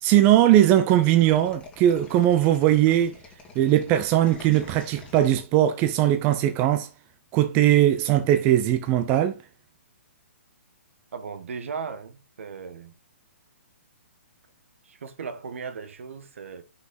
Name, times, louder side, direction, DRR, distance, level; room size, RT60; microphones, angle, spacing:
voice 1, 0.0-3.1 3.5-6.9 7.3-9.4, right 12 dB, 25° right, 0.6 m, -20 dB
sound 1, 1.3-6.1, left 3 dB, 15° left, 2.2 m, -47 dB
voice 2, 11.1-12.9 14.8-16.6, right 5 dB, 70° right, 1.5 m, -37 dB
5.7 x 5.6 x 3.8 m
hypercardioid pair, 140°, 7 cm